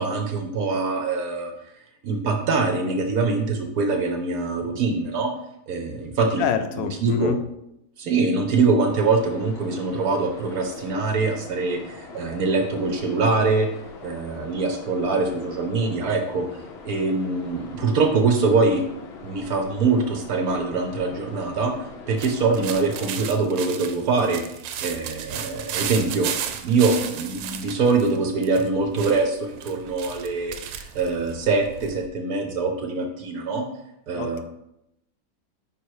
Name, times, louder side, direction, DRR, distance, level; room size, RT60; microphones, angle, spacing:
voice 1, 0.0-1.5 2.0-5.3 5.7-7.4 8.0-13.7 14.0-16.5 16.8-18.8 19.2-21.7 22.1-26.3 26.6-33.6 34.1-34.4, right 4 dB, 60° right, 4 dB, 1.1 m, -23 dB
voice 2, 6.4-7.4 34.1-34.4, left 8 dB, 80° left, 8 dB, 1.3 m, -26 dB
sound 1, 8.9-23.1, left 4 dB, 55° left, 0.7 m, -42 dB
sound 2, 22.2-32.1, right 9 dB, 85° right, 1.3 m, -34 dB
5.5 x 4.5 x 4.7 m, 0.82 s
omnidirectional pair, 2.0 m